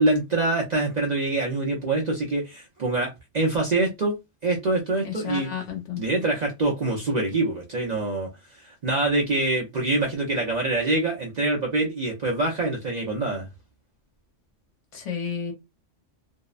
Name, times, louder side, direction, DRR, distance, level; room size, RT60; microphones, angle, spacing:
voice 1, 0.0-4.2 4.4-5.5 6.0-8.3 8.6-13.5, right 2 dB, 45° right, 0.6 m, -25 dB
voice 2, 5.0-6.0 14.9-15.5, left 7 dB, 70° left, 1.1 m, -31 dB
2.7 x 2.1 x 2.3 m
omnidirectional pair, 1.3 m